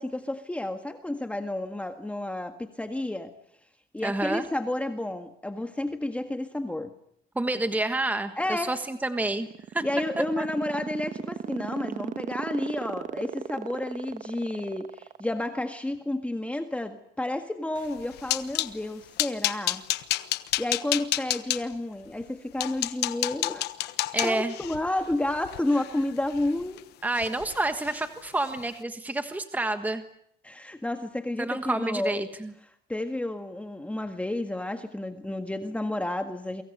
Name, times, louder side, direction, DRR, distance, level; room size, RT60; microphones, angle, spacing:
voice 1, 0.0-3.3 3.9-6.9 8.4-8.8 9.8-19.8 20.6-23.9 24.2-26.8 30.4-32.2 32.9-36.6, left 1 dB, 5° left, 6 dB, 1.7 m, -31 dB
voice 2, 4.0-4.5 7.3-9.5 9.7-9.8 10.4-10.5 24.1-24.5 27.0-30.0 31.4-32.5, right 2 dB, 10° right, 8 dB, 1.5 m, -29 dB
sound 1, 9.2-15.8, right 8 dB, 45° right, 1.4 m, -35 dB
sound 2, 17.8-18.7 19.2-21.6 22.2-22.3 22.6-26.8 27.1-27.6 27.8-28.0 28.4-28.6, left 15 dB, 80° left, 1.2 m, -30 dB
29.0 x 24.5 x 6.8 m, 0.72 s
cardioid pair, 110°, 17 cm